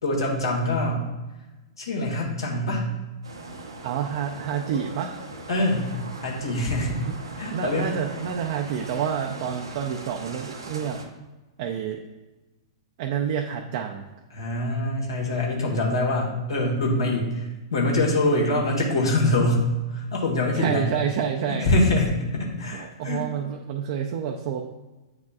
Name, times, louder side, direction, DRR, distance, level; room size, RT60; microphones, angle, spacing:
voice 1, 0.0-1.1 1.8-2.8 5.5-5.9 6.2-7.0 7.4-7.9 14.3-20.9 21.5-23.2, left 1 dB, 80° left, -2 dB, 1.6 m, -24 dB
sound 1, 3.2-11.1, right 2 dB, 85° right, 0.9 m, -40 dB
voice 2, 3.8-5.2 7.1-7.2 7.5-11.0 11.6-12.0 13.0-14.0 16.2-16.3 20.5-21.7 22.7-24.6, right 8 dB, 50° right, 2 dB, 0.5 m, -28 dB
8.3 x 4.9 x 2.3 m, 1.1 s
figure-of-eight pair, 105°, 2 cm